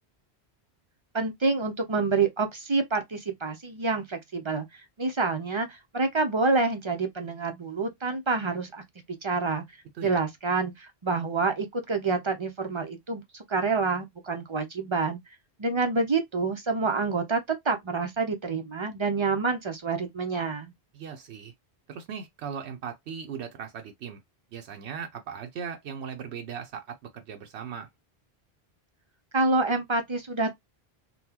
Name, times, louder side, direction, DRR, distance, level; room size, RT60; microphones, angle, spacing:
voice 1, 1.1-8.8 9.2-9.6 10.0-15.2 15.6-17.4 17.6-20.7 29.3-30.6, right 4 dB, 35° right, 0.5 m, -27 dB
voice 2, 20.9-21.5 21.9-24.2 24.5-27.9, right 7 dB, 90° right, 0.9 m, -38 dB
3.9 x 2.2 x 2.8 m
omnidirectional pair, 1.1 m